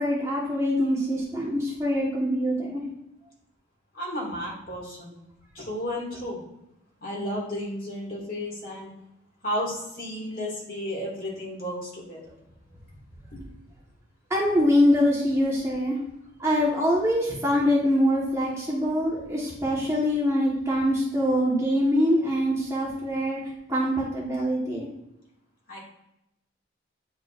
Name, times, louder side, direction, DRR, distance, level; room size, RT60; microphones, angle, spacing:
voice 1, 0.0-2.8 14.3-16.0 16.4-23.4 23.7-24.9, equal, 15° right, -4 dB, 1.2 m, -24 dB
voice 2, 3.9-5.1 5.5-6.4 7.0-8.9 9.4-12.3 13.3-13.4 25.7-25.8, equal, 45° left, -3 dB, 2.1 m, -33 dB
9.5 x 4.5 x 2.5 m, 0.87 s
head